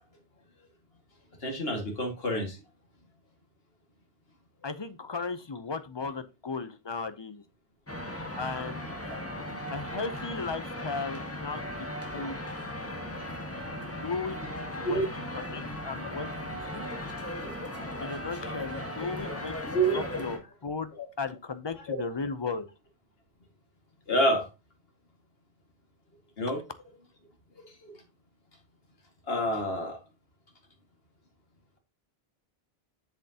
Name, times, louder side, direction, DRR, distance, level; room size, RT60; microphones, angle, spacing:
voice 1, 1.4-2.6 9.1-9.2 13.1-13.2 13.5-13.7 14.6-15.0 15.3-15.4 17.3-17.9 19.5-20.1 21.9-22.0 24.1-24.5 26.4-26.6 27.6-27.9 29.3-30.0, right 1 dB, 70° left, 2 dB, 2.2 m, -29 dB
voice 2, 4.6-7.4 8.4-8.8 9.7-12.4 13.9-14.4 14.8-15.0 15.3-17.0 18.0-19.6 19.9-22.7, left 4 dB, 30° left, 12 dB, 0.6 m, -36 dB
sound 1, 7.9-20.4, left 1 dB, 15° left, 1.4 m, -37 dB
7.8 x 7.1 x 2.8 m, 0.27 s
omnidirectional pair, 1.1 m